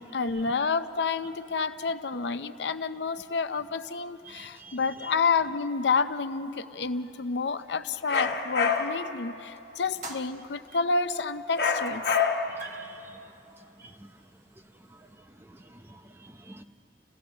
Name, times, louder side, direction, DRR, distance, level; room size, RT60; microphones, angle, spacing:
voice 1, 0.0-12.2, left 4 dB, 80° left, 0.6 m, -29 dB
voice 2, 4.3-4.8 12.6-13.0 13.8-13.9 15.7-16.6, right 3 dB, 15° right, 0.7 m, -49 dB
sound 1, 8.1-9.1 11.6-12.7, left 5 dB, 65° left, 1.3 m, -26 dB
sound 2, 10.0-11.0 11.6-12.1 12.4-15.1, right 2 dB, 45° right, 1.5 m, -46 dB
29.0 x 16.0 x 6.9 m
head